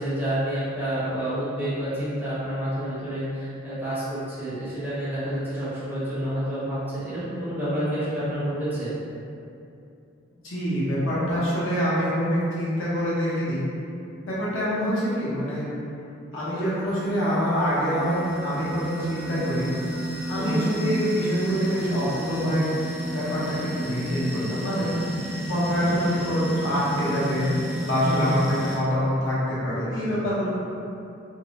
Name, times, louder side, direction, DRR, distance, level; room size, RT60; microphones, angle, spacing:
voice 1, 0.0-8.9 20.3-20.7 28.0-28.4, right 1 dB, 10° right, -14 dB, 1.0 m, -29 dB
voice 2, 10.4-13.6 14.2-15.7 16.3-19.7 20.3-22.7 23.1-24.9 25.5-27.5 27.8-30.5, equal, 90° left, -8 dB, 0.8 m, -25 dB
sound 1, 16.9-28.8, right 1 dB, 35° right, 0.6 m, -32 dB
2.6 x 2.0 x 2.8 m, 2.6 s
head